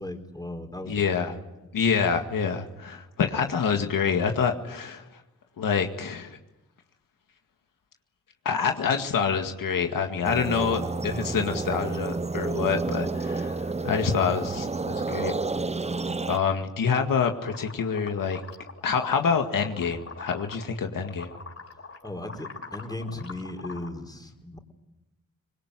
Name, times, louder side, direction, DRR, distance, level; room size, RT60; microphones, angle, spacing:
voice 1, 0.0-1.4 22.0-24.6, left 1 dB, 10° left, 3 dB, 4.3 m, -37 dB
voice 2, 0.9-1.4 1.7-5.0 5.6-6.4 8.5-15.3 16.3-18.4 18.8-21.3, left 6 dB, 75° left, 4 dB, 2.0 m, -26 dB
sound 1, 10.2-16.4, right 3 dB, 20° right, 0.8 m, -30 dB
sound 2, 17.4-20.7 21.0-23.9, left 4 dB, 45° left, 6.1 m, -43 dB
24.5 x 21.0 x 9.7 m, 0.97 s
cardioid pair, 55°, 34 cm